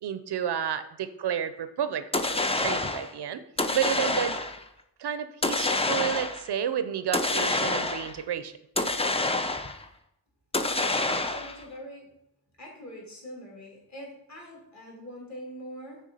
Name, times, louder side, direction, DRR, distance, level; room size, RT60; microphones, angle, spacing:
voice 1, 0.0-3.4 3.7-4.4 5.0-8.5, right 9 dB, 75° right, 12 dB, 0.6 m, -31 dB
sound 1, 2.1-3.1 3.6-4.6 5.4-6.5 7.1-8.2 8.8-9.9 10.5-11.6, left 2 dB, 15° left, 0.4 m, -27 dB
voice 2, 10.7-12.1 12.6-16.0, equal, 40° left, -2 dB, 2.5 m, -44 dB
6.3 x 3.7 x 5.4 m, 0.81 s
wide cardioid pair, 95°, 41 cm